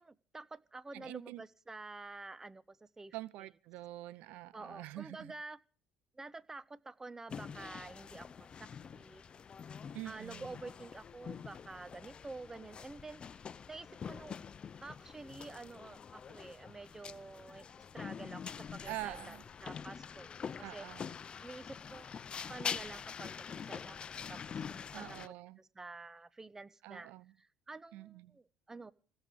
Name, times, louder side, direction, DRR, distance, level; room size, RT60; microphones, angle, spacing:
voice 1, 0.0-3.1 4.5-5.6 6.1-9.3 10.0-13.2 13.7-14.4 14.8-20.3 20.6-20.9 21.4-22.1 22.5-27.1 27.4-28.9, right 3 dB, 20° right, 1.2 m, -49 dB
voice 2, 0.9-1.4 3.1-5.3 9.9-10.5 18.9-19.4 20.6-21.1 24.9-25.6 26.8-27.2 27.9-28.3, right 16 dB, 70° right, 0.6 m, -45 dB
sound 1, 7.3-25.3, left 7 dB, 40° left, 0.8 m, -45 dB
17.0 x 7.8 x 8.6 m
hypercardioid pair, 70°, 3 cm